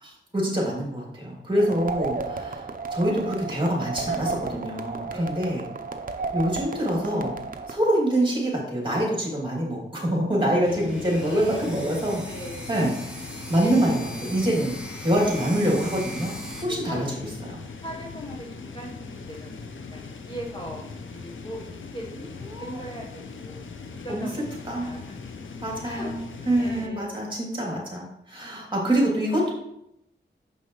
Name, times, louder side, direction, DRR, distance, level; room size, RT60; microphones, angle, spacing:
voice 1, 0.0-5.6 6.3-12.2 12.7-12.9 13.5-16.3 16.6-17.1 17.5-17.6 22.5-22.8 24.1-24.3 24.6-24.9 25.6-26.1 26.5-29.5, right 1 dB, 25° right, -3 dB, 2.6 m, -25 dB
voice 2, 1.6-1.9 2.4-2.5 5.1-5.6 10.7-10.8 11.2-11.9 12.3-12.6 13.6-13.8 16.7-17.0 17.8-23.6 24.0-25.2 25.8-26.1 26.6-27.1 28.3-28.5, right 1 dB, 25° left, -2 dB, 1.3 m, -40 dB
sound 1, 1.6-7.8, right 4 dB, 45° right, 0.6 m, -33 dB
sound 2, 10.6-26.9, left 4 dB, 85° left, 0.6 m, -40 dB
sound 3, 10.9-16.6, equal, 5° right, 1.5 m, -40 dB
6.7 x 5.5 x 3.1 m, 0.79 s
cardioid pair, 55°, 20 cm